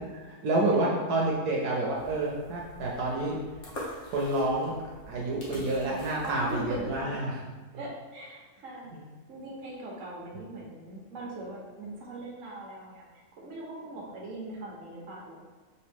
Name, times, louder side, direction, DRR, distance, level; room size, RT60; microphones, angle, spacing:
voice 1, 0.2-3.4 4.1-4.7 5.1-7.3, right 2 dB, 80° right, -3 dB, 1.2 m, -28 dB
sound 1, 1.9-7.0, equal, 55° left, 1.4 m, -45 dB
voice 2, 6.2-7.4 7.7-8.9 9.3-13.0 13.4-15.4, right 2 dB, 60° right, -3 dB, 1.4 m, -41 dB
5.2 x 2.7 x 3.4 m, 1.4 s
omnidirectional pair, 1.6 m